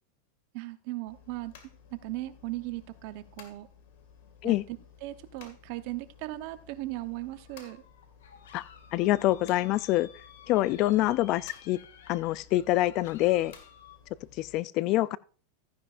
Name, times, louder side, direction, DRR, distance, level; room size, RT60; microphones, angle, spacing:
voice 1, 0.5-1.5 1.9-3.7 4.4-7.8, right 17 dB, 55° right, 0.9 m, -38 dB
sound 1, 1.1-14.6, left 7 dB, 65° left, 2.1 m, -55 dB
sound 2, 7.3-14.0, left 8 dB, 85° left, 1.6 m, -54 dB
voice 2, 8.9-10.1 10.5-11.8 12.1-13.5 14.4-15.2, left 16 dB, 45° left, 0.4 m, -26 dB
14.5 x 10.0 x 2.6 m
supercardioid pair, 130°, 0 cm